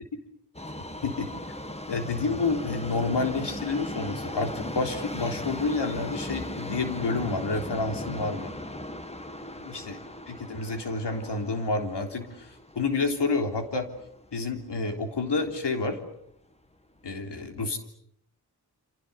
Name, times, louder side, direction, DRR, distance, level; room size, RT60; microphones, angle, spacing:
Subway metro underground, 0.5-14.7 15.0-15.1 15.9-16.0 16.3-16.4 17.0-17.1, left 1 dB, 15° left, 1.8 m, -38 dB
voice 1, 1.9-8.5 9.6-10.0 10.3-13.9 14.3-16.0 17.0-17.8, left 3 dB, 90° left, 5 dB, 3.5 m, -29 dB
28.5 x 27.0 x 6.9 m, 0.71 s
wide cardioid pair, 75°, 40 cm